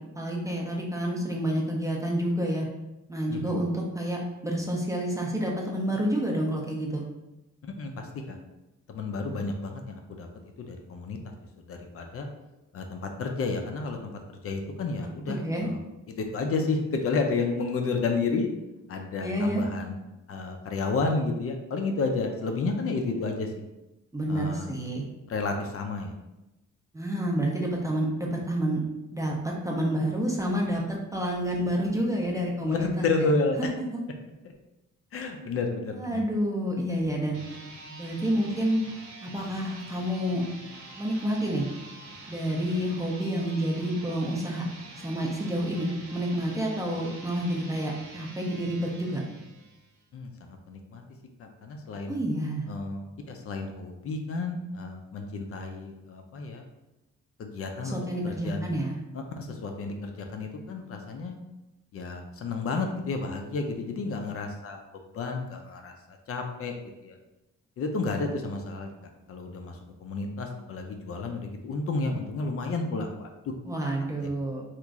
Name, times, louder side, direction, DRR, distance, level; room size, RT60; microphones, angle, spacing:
voice 1, 0.1-2.7 3.1-7.0 9.2-9.4 15.3-15.7 19.2-19.6 24.1-25.1 26.9-28.8 29.1-33.1 33.6-33.7 33.9-34.0 35.9-37.6 38.0-38.8 39.2-40.4 41.0-41.7 42.3-44.6 45.0-49.2 52.1-52.7 57.8-59.0 73.6-74.6, equal, 10° right, -2 dB, 0.4 m, -29 dB
voice 2, 7.6-8.4 8.9-10.3 10.6-11.2 11.6-12.3 12.7-15.8 16.1-18.5 18.9-20.0 20.3-23.5 24.3-24.7 25.3-26.1 32.7-33.7 35.1-36.2 50.1-51.0 51.4-52.2 52.7-56.7 57.4-58.0 58.2-58.7 59.1-61.4 61.9-64.8 65.1-65.9 66.3-67.2 67.8-68.9 69.3-73.5, left 3 dB, 50° left, 4 dB, 0.4 m, -31 dB
sound 1, 37.2-50.0, right 2 dB, 90° right, 0.9 m, -46 dB
3.0 x 2.4 x 3.5 m, 0.97 s
wide cardioid pair, 155°, 29 cm